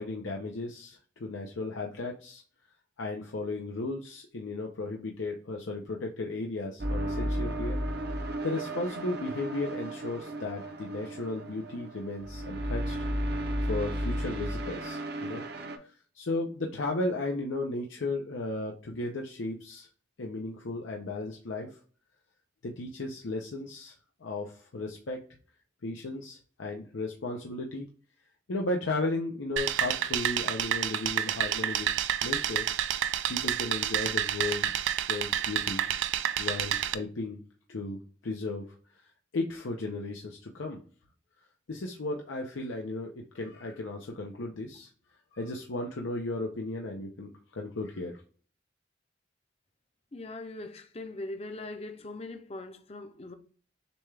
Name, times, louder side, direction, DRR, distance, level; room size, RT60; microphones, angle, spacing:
voice 1, 0.0-2.4 3.0-7.8 8.4-13.0 13.6-15.4 15.8-19.9 20.2-21.8 22.6-23.9 24.2-25.2 25.8-27.9 28.5-31.9 32.2-32.6 33.3-34.8 35.1-35.8 36.4-37.4 37.7-38.6 39.3-40.8 41.7-44.9 45.3-48.2, left 2 dB, 90° left, 0.7 m, -35 dB
sound 1, 6.8-15.8, right 1 dB, 60° right, 0.7 m, -34 dB
sound 2, 29.6-36.9, right 10 dB, 75° right, 0.3 m, -29 dB
voice 2, 50.1-53.3, left 2 dB, 30° left, 0.6 m, -41 dB
6.9 x 2.3 x 3.3 m
head